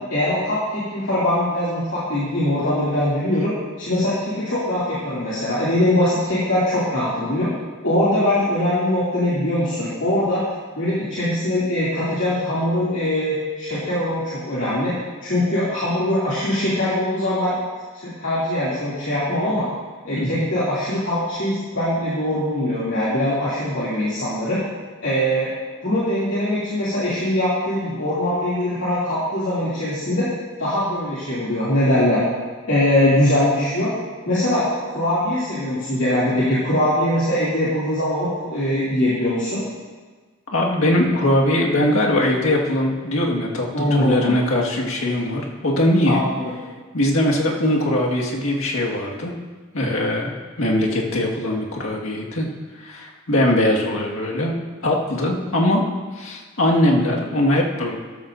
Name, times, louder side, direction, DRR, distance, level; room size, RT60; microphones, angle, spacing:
voice 1, 0.1-3.5 3.8-7.5 7.8-10.4 10.8-14.9 15.2-17.6 18.0-19.7 20.0-24.6 25.0-25.5 25.8-30.3 30.6-32.2 32.7-33.9 34.3-39.6 43.7-44.4 46.1-46.4, left 1 dB, 65° left, -10 dB, 2.6 m, -22 dB
voice 2, 20.1-20.5 40.5-46.2 46.9-49.3 49.7-50.3 50.6-52.5 52.7-55.8 56.1-58.0, left 1 dB, 80° left, -2 dB, 1.8 m, -21 dB
13.0 x 12.5 x 2.6 m, 1.4 s
head